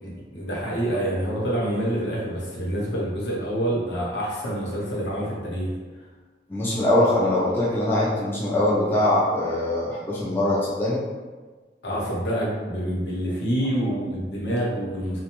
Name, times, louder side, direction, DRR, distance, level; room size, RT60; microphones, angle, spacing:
voice 1, 0.0-5.7 11.8-15.2, right 1 dB, 80° left, -5 dB, 0.8 m, -27 dB
voice 2, 6.5-11.0, left 1 dB, 10° left, -6 dB, 0.3 m, -22 dB
2.4 x 2.2 x 2.9 m, 1.4 s
head